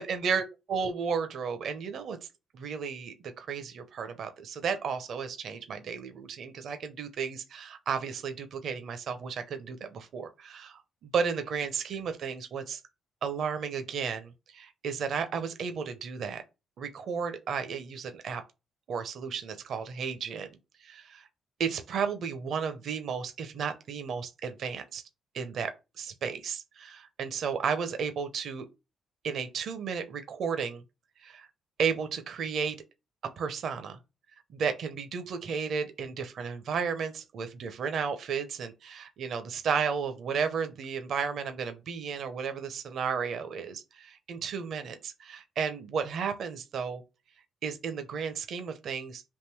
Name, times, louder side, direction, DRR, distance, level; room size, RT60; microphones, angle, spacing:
voice 1, 0.0-2.2 2.5-12.8 13.2-16.4 16.8-18.4 18.9-20.5 20.8-21.3 21.6-25.0 25.3-28.7 29.2-30.8 31.2-31.5 31.8-32.8 33.4-34.0 34.5-47.0 47.6-49.2, right 6 dB, 65° right, 0.6 m, -33 dB
3.6 x 2.6 x 4.5 m
cardioid pair, 90°, 0 cm